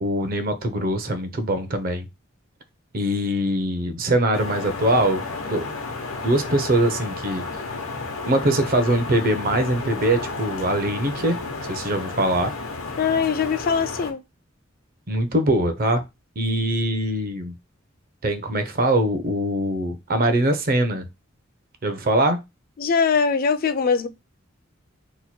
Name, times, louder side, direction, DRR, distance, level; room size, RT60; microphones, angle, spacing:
voice 1, 0.0-2.1 2.9-5.7 6.2-7.4 8.3-12.5 15.1-16.0 16.4-17.5 18.2-21.1 21.8-22.4, right 1 dB, 45° right, 0.6 m, -22 dB
sound 1, 4.3-14.1, left 3 dB, 85° left, 0.8 m, -32 dB
voice 2, 13.0-14.2 22.8-24.1, left 5 dB, 45° left, 0.4 m, -21 dB
3.0 x 2.2 x 4.1 m
head